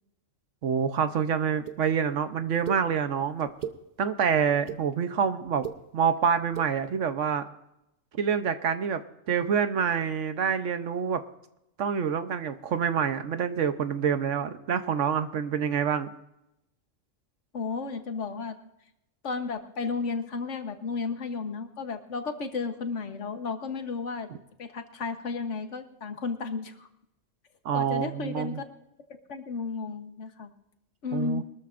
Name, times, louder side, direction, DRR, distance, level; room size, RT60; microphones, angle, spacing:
voice 1, 0.6-3.5 4.0-5.6 5.9-7.4 8.2-9.0 9.3-11.2 11.8-16.1 24.3-24.4 27.6-28.6 31.1-31.4, right 7 dB, 70° right, 10 dB, 1.1 m, -27 dB
sound 1, 1.7-1.8 2.6-2.8 3.4-3.8 4.4-4.8 5.5-5.8 6.4-6.7, right 8 dB, 40° right, 0.9 m, -36 dB
voice 2, 17.5-18.5 19.2-24.3 24.6-26.9 27.7-28.6 29.1-30.5 31.0-31.4, left 4 dB, 65° left, 7 dB, 1.4 m, -33 dB
22.5 x 13.5 x 2.5 m, 0.86 s
omnidirectional pair, 1.3 m